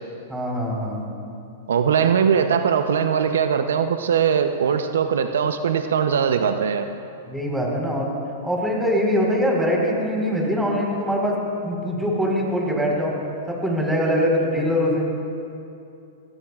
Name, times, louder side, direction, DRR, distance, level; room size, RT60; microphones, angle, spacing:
voice 1, 0.3-1.0 7.2-8.1 8.4-11.4 11.6-13.1 13.5-15.1, equal, 5° right, -2 dB, 4.3 m, -23 dB
voice 2, 1.7-6.9, right 7 dB, 80° right, 8 dB, 0.7 m, -20 dB
23.5 x 17.0 x 2.5 m, 2.6 s
hypercardioid pair, 115°, 0 cm